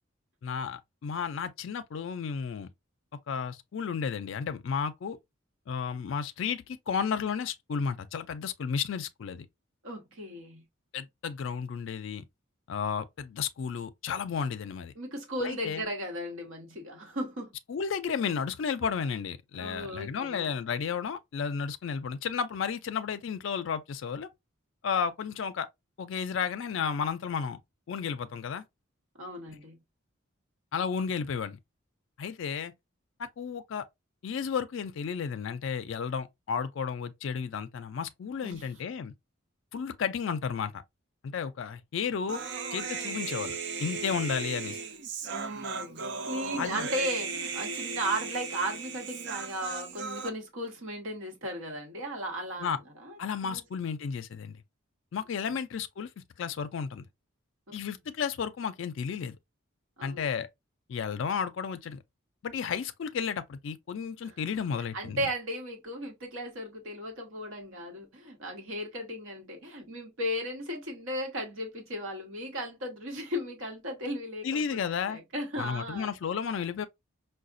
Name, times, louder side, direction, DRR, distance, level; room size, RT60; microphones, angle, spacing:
voice 1, 0.4-2.7 3.3-5.2 5.7-9.5 10.9-12.2 12.7-14.9 15.4-15.8 17.7-24.3 24.8-25.7 26.0-27.6 27.9-28.6 30.7-31.6 32.2-32.7 33.2-33.9 34.2-39.1 39.7-40.8 41.2-42.4 42.7-44.8 46.6-46.9 52.6-52.8 53.2-54.6 55.1-56.1 56.4-57.1 57.7-59.4 60.0-60.5 60.9-62.0 62.4-65.2 74.4-75.2 75.6-76.9, left 6 dB, 65° left, 0.3 m, -33 dB
voice 2, 9.8-10.6 14.9-17.5 19.6-20.5 29.1-29.8 38.4-38.7 45.3-53.6 57.7-57.8 60.0-60.3 64.2-64.4 64.9-74.8 75.1-76.1, equal, 75° right, 1.1 m, -36 dB
Human voice, 42.3-50.3, right 5 dB, 55° right, 0.5 m, -36 dB
4.7 x 2.2 x 2.5 m
head